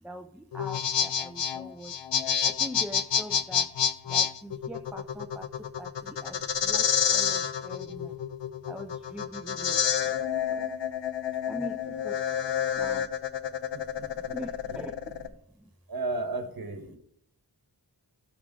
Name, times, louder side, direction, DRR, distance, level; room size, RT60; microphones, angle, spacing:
voice 1, 0.0-2.0 2.5-3.7 4.1-8.2 8.7-10.2 10.5-10.7 11.5-12.2 12.8-13.1 14.1-15.7, equal, 5° right, 4 dB, 0.3 m, -43 dB
sound 1, 0.5-15.3, left 8 dB, 90° left, 0.6 m, -28 dB
voice 2, 13.7-14.3 14.7-14.9 15.9-17.0, right 2 dB, 55° right, 7 dB, 1.1 m, -35 dB
12.5 x 4.9 x 3.7 m, 0.70 s
wide cardioid pair, 80°, 42 cm